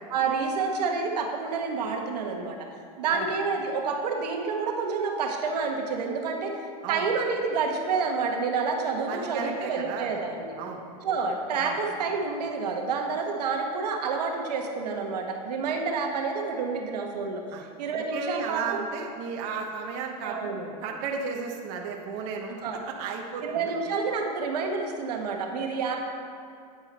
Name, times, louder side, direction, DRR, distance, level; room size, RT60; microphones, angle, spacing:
voice 1, 0.1-2.6 3.0-10.5 11.0-18.8 20.2-20.7 22.5-22.8 23.4-26.0, right 4 dB, 85° right, 2 dB, 1.3 m, -29 dB
voice 2, 9.1-10.1 10.6-10.8 11.6-11.8 17.5-17.6 18.1-20.4 20.8-22.5 22.9-23.7, right 5 dB, 55° right, 1 dB, 1.2 m, -34 dB
9.9 x 8.0 x 4.3 m, 2.4 s
supercardioid pair, 130°, 20 cm